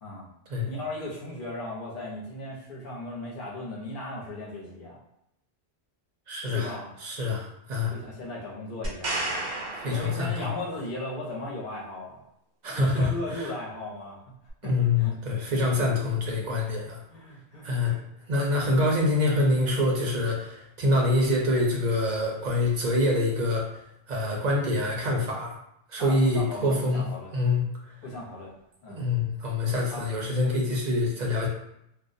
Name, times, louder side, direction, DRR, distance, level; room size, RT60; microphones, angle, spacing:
voice 1, 0.6-5.0 6.5-7.0 7.9-9.3 9.8-12.2 12.7-14.3 14.6-15.6 17.1-18.0 26.0-27.3 28.0-28.5 28.8-29.0 29.9-30.0, left 1 dB, 55° left, -3 dB, 0.8 m, -37 dB
voice 2, 6.3-6.7 7.0-7.9 9.8-10.5 12.6-13.5 14.6-17.0 17.6-17.9 18.3-23.7 24.1-25.6 25.9-27.0 27.3-27.7 28.9-31.5, left 2 dB, 50° right, -2 dB, 0.6 m, -25 dB
sound 1, 8.8-10.8 14.5-14.6, right 2 dB, 90° right, 0.9 m, -33 dB
2.4 x 2.0 x 2.5 m, 0.77 s
omnidirectional pair, 1.1 m